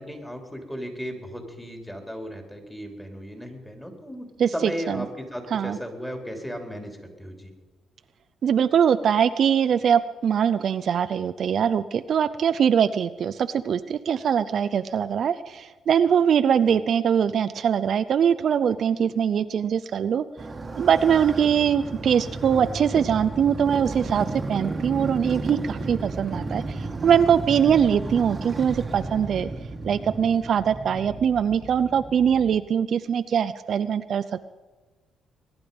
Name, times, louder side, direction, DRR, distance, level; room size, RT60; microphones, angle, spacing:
voice 1, 0.0-4.2 4.5-7.5 16.7-16.8, equal, 5° left, 3 dB, 3.1 m, -35 dB
voice 2, 4.4-5.1 5.5-5.8 8.4-20.2 20.8-29.5 29.8-34.2, right 8 dB, 60° right, 12 dB, 0.5 m, -22 dB
Motorcycle, 20.4-32.6, right 3 dB, 30° right, 1.5 m, -33 dB
21.5 x 10.5 x 5.3 m, 1.3 s
cardioid pair, 90°, 0 cm